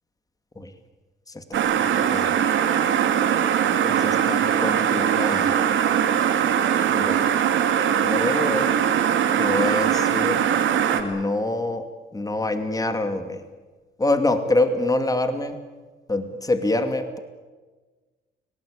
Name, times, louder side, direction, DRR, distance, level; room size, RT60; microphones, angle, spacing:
voice 1, 1.3-2.4 3.8-5.5 6.9-7.3 8.0-8.8 9.4-10.5 10.9-11.9 12.1-13.4 14.0-15.6 16.1-17.2, left 2 dB, 20° left, 8 dB, 2.4 m, -26 dB
sound 1, 1.5-11.0, right 9 dB, 75° right, 2.6 m, -21 dB
30.0 x 18.0 x 8.7 m, 1.3 s
cardioid pair, 90°, 20 cm